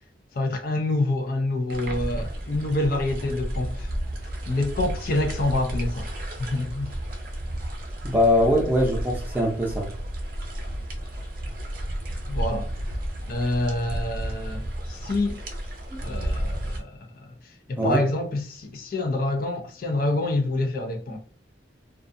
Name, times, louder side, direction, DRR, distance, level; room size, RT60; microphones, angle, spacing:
voice 1, 0.3-3.9 4.5-6.1 6.4-7.0 12.3-12.7 13.3-15.4 16.0-21.2, left 2 dB, 50° left, 0.4 m, -27 dB
sound 1, 1.7-16.8, right 1 dB, 50° right, 0.6 m, -32 dB
voice 2, 8.0-9.9 15.9-16.0 17.8-18.0, left 1 dB, 10° right, 0.6 m, -22 dB
2.4 x 2.3 x 2.5 m
head